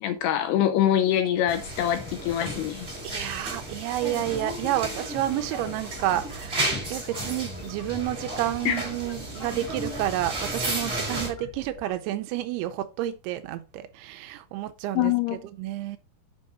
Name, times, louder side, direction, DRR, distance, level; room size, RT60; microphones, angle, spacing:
voice 1, 0.0-3.6 8.7-8.8 14.9-15.4, left 11 dB, 80° left, 2.5 m, -25 dB
sound 1, 1.5-11.3, right 1 dB, 15° right, 3.3 m, -33 dB
voice 2, 3.0-15.1 15.6-16.0, right 13 dB, 90° right, 2.3 m, -30 dB
sound 2, 4.8-11.9, left 5 dB, 65° left, 3.0 m, -47 dB
7.5 x 6.0 x 4.3 m
omnidirectional pair, 5.3 m